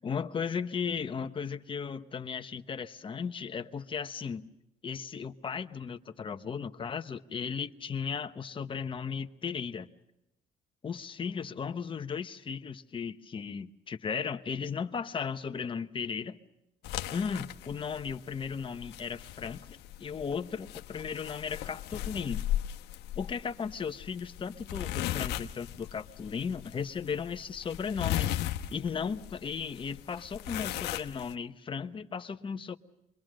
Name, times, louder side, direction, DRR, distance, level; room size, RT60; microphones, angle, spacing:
voice 1, 0.0-4.5 4.8-9.9 10.8-16.4 17.1-22.4 23.2-28.3 28.7-32.8, left 6 dB, 30° left, 1.0 m, -36 dB
sound 1, 16.8-31.3, left 13 dB, 85° left, 1.0 m, -37 dB
27.5 x 22.5 x 6.4 m
cardioid pair, 110°, 17 cm